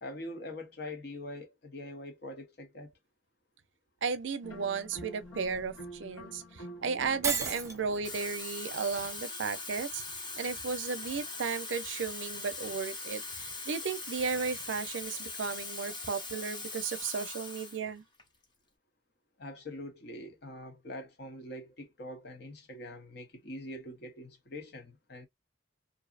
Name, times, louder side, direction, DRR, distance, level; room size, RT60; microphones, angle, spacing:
voice 1, 0.0-2.9 19.4-25.3, left 1 dB, 55° left, 0.8 m, -44 dB
voice 2, 4.0-18.0, right 5 dB, 75° right, 0.5 m, -35 dB
sound 1, 4.4-8.4, equal, 90° left, 1.1 m, -47 dB
Shatter, 7.2-7.8, right 5 dB, 15° right, 0.4 m, -31 dB
Water tap faucet / Fill (with liquid), 7.9-17.8 18.2-18.4, left 3 dB, 25° left, 0.7 m, -41 dB
2.6 x 2.0 x 2.4 m
head